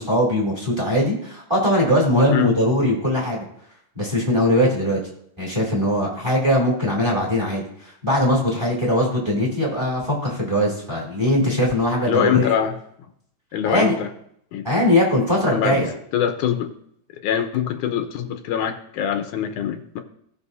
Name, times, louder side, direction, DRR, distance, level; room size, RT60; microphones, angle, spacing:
voice 1, 0.0-3.4 3.9-5.0 5.4-12.5 13.6-13.9 14.6-15.9, left 1 dB, 10° right, -3 dB, 2.7 m, -20 dB
voice 2, 12.0-12.8 13.5-14.1 14.5-14.7 15.5-15.8 16.1-16.7 17.2-20.0, left 9 dB, 85° left, 7 dB, 2.2 m, -23 dB
17.5 x 6.2 x 2.7 m, 0.70 s
omnidirectional pair, 3.4 m